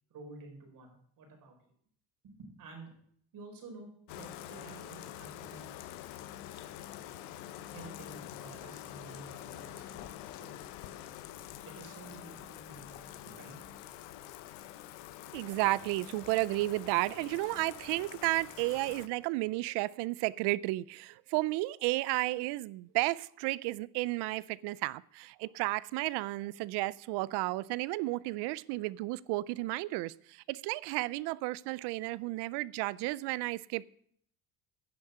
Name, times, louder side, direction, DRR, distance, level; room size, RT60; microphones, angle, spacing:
voice 1, 0.1-1.6 2.2-2.9 3.3-5.7 7.7-10.6 11.6-13.6, right 3 dB, 55° right, 4.8 m, -51 dB
Bathtub (filling or washing), 4.1-19.1, left 12 dB, 90° left, 0.9 m, -46 dB
voice 2, 15.3-33.8, right 20 dB, 80° right, 0.5 m, -33 dB
10.5 x 7.1 x 6.6 m
cardioid pair, 125°, 40 cm